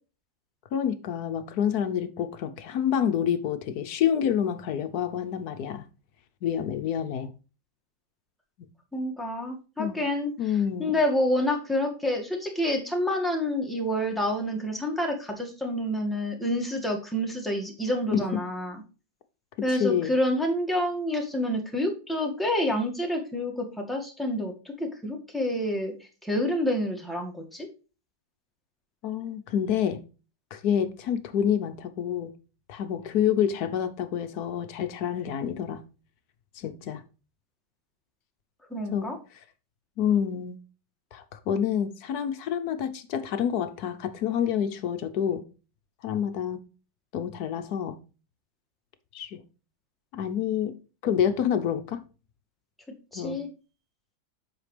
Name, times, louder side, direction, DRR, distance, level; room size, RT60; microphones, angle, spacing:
voice 1, 0.7-5.8 6.4-7.3 9.8-10.0 10.4-10.9 18.1-18.4 19.7-20.1 29.0-30.0 30.5-32.3 32.7-35.8 36.6-37.0 38.9-39.2 40.0-40.6 41.1-45.4 46.0-46.6 47.1-48.0 49.1-49.4 50.1-50.8 51.0-52.0 53.1-53.4, left 9 dB, 65° left, 1.2 m, -28 dB
voice 2, 8.9-10.3 10.8-18.8 19.6-24.5 24.8-25.9 26.2-27.7 38.7-39.2 53.1-53.5, left 1 dB, ahead, 1.6 m, -28 dB
8.1 x 5.7 x 3.3 m
omnidirectional pair, 1.8 m